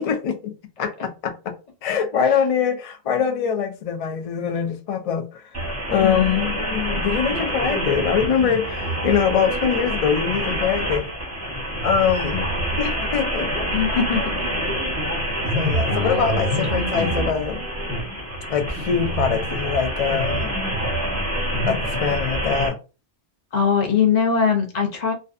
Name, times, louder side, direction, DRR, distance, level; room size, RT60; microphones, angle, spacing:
voice 1, 0.0-1.5 1.8-5.5 5.9-11.1 11.8-12.5 12.8-13.7 15.5-17.6 18.5-20.6 21.7-22.8, left 7 dB, 65° left, 0.3 m, -23 dB
sound 1, 5.5-22.7, equal, 20° right, 0.6 m, -26 dB
voice 2, 13.7-14.4 15.9-16.3 16.7-17.0 23.5-25.1, left 6 dB, 45° left, 0.7 m, -22 dB
2.6 x 2.2 x 2.4 m
omnidirectional pair, 1.2 m